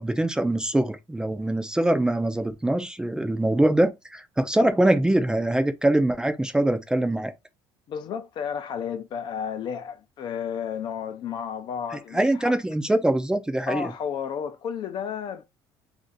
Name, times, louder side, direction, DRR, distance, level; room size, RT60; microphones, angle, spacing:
voice 1, 0.0-7.3 12.1-13.9, right 1 dB, 10° right, 0.4 m, -23 dB
voice 2, 7.9-12.6 13.7-15.4, left 7 dB, 50° left, 0.5 m, -32 dB
2.5 x 2.5 x 3.8 m
cardioid pair, 120°, 10 cm